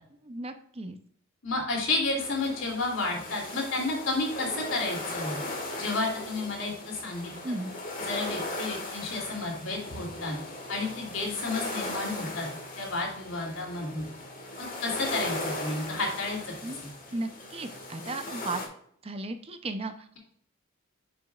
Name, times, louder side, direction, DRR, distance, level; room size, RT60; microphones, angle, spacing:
voice 1, 0.2-1.0 7.4-7.7 16.6-16.8 17.1-18.6 19.0-20.1, right 2 dB, 30° right, 8 dB, 0.6 m, -35 dB
voice 2, 1.4-5.4 5.8-7.3 8.1-10.4 10.7-12.5 12.8-14.1 14.8-16.5 16.8-16.9, left 2 dB, 70° left, 0 dB, 2.7 m, -31 dB
sound 1, 2.2-18.7, left 2 dB, 40° left, 1.8 m, -38 dB
8.9 x 6.1 x 2.4 m, 0.64 s
head